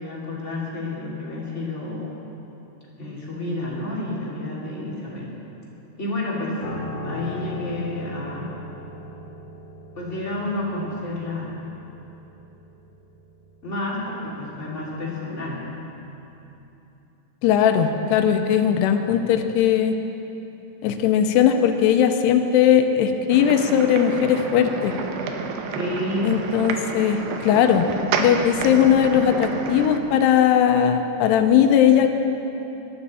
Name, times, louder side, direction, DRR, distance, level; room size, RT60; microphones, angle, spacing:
voice 1, 0.0-2.1 3.0-5.3 6.0-6.6 7.0-8.6 9.9-11.6 13.6-15.6 25.7-26.4, left 2 dB, 20° left, -6 dB, 2.2 m, -30 dB
Piano, 6.6-16.0 16.3-16.5, left 1 dB, 55° left, 3.0 m, -38 dB
voice 2, 17.4-20.0 20.8-24.9 26.2-32.1, left 9 dB, 90° left, 7 dB, 2.8 m, -19 dB
sound 1, 23.3-30.0, right 5 dB, 85° right, 3.0 m, -29 dB
19.0 x 12.0 x 4.2 m, 3.0 s
omnidirectional pair, 4.6 m